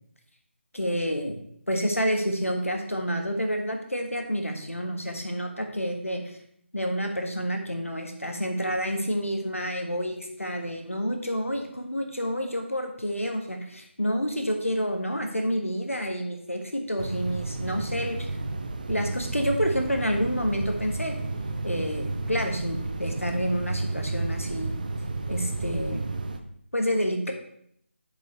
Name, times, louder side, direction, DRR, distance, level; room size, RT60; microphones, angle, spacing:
voice 1, 0.7-1.4 1.7-6.4 6.7-18.3 18.9-21.1 21.6-24.8 25.3-26.0 26.7-27.3, equal, 90° left, 4 dB, 1.6 m, -29 dB
sound 1, 17.0-26.4, right 3 dB, 40° right, 0.6 m, -32 dB
8.3 x 6.4 x 3.2 m, 0.68 s
figure-of-eight pair, 155°, 7 cm